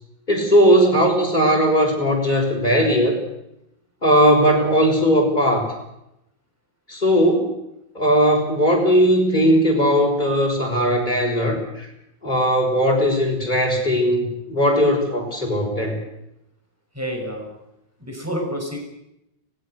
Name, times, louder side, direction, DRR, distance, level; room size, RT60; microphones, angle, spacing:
voice 1, 0.3-3.2 4.0-5.7 6.9-7.5 7.9-11.9 12.2-16.0, equal, 25° left, 0 dB, 6.5 m, -18 dB
voice 2, 17.0-17.5 18.0-18.8, equal, 5° right, 2 dB, 5.5 m, -28 dB
24.5 x 20.0 x 6.6 m, 0.84 s
omnidirectional pair, 2.0 m